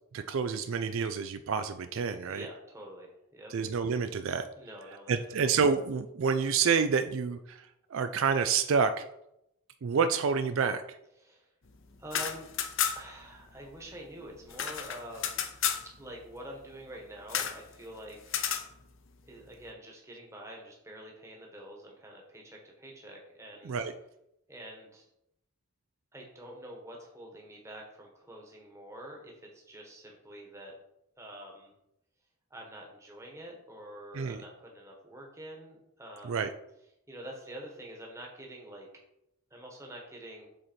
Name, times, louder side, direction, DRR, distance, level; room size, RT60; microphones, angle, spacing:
voice 1, 0.1-2.4 3.5-4.5 5.1-7.6 7.9-9.0 9.8-10.8 23.7-23.9 34.1-34.4 36.3-36.5, right 5 dB, 60° right, 10 dB, 0.4 m, -28 dB
voice 2, 2.3-3.5 4.6-5.5 11.2-11.5 12.0-12.5 12.9-15.4 16.0-18.4 19.2-23.8 24.5-25.1 26.1-30.7 31.2-31.7 32.5-36.5 37.1-38.9 39.5-40.5, right 1 dB, 15° right, 0 dB, 1.3 m, -46 dB
sound 1, 12.0-13.2 13.5-13.6 13.9-15.9 17.3-17.6 18.3-18.7, left 8 dB, 55° left, 0.7 m, -32 dB
7.7 x 4.2 x 4.5 m, 0.82 s
head